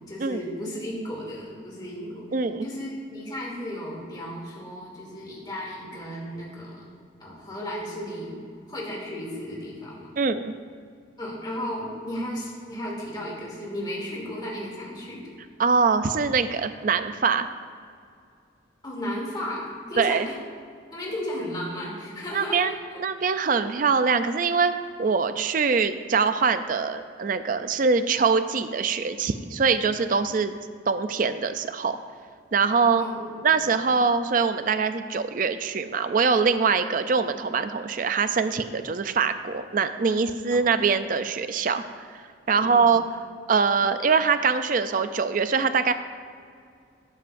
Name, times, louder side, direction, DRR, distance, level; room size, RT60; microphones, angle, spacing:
voice 1, 0.0-2.3 2.6-6.9 7.2-8.4 8.7-10.1 11.2-15.3 18.8-20.3 20.9-22.6 33.0-33.7 40.5-40.6 42.5-42.8, equal, 20° left, -4 dB, 2.6 m, -34 dB
voice 2, 2.3-2.7 10.2-10.5 15.6-17.5 20.0-20.3 22.3-22.7 23.0-24.7 25.0-30.5 30.9-32.0 32.5-33.0 33.4-41.8 42.5-43.0 43.5-45.9, right 5 dB, 40° right, 10 dB, 0.4 m, -23 dB
13.0 x 12.0 x 2.6 m, 2.3 s
head